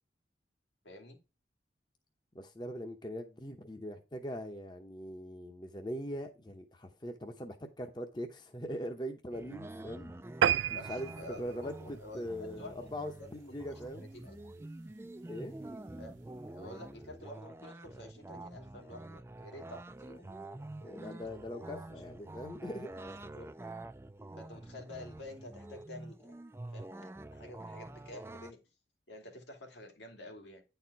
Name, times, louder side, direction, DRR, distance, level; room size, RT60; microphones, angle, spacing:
voice 1, 0.8-1.2 10.6-12.9 13.2-14.6 16.0-20.5 21.1-21.2 21.9-22.0 23.0-23.5 24.4-26.3 26.7-28.6 29.1-30.6, left 1 dB, 80° left, 2.4 m, -50 dB
voice 2, 2.3-10.1 10.7-11.1 11.4-14.1 15.3-15.5 20.8-22.9, equal, 25° left, 0.8 m, -41 dB
sound 1, 9.3-28.5, right 2 dB, 15° right, 0.4 m, -47 dB
sound 2, 10.4-13.2 13.6-13.8 14.3-14.4 14.7-14.8 15.0-15.1, right 9 dB, 90° right, 0.3 m, -32 dB
10.0 x 4.3 x 4.6 m
head